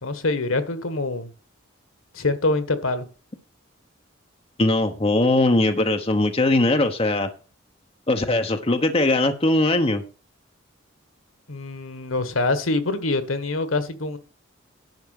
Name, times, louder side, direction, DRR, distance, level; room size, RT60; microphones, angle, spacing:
voice 1, 0.0-1.3 2.1-3.1 11.5-14.2, left 2 dB, 80° left, 12 dB, 1.4 m, -25 dB
voice 2, 4.6-7.3 8.1-10.0, left 2 dB, 30° left, 6 dB, 1.0 m, -20 dB
10.5 x 6.0 x 6.5 m, 0.36 s
head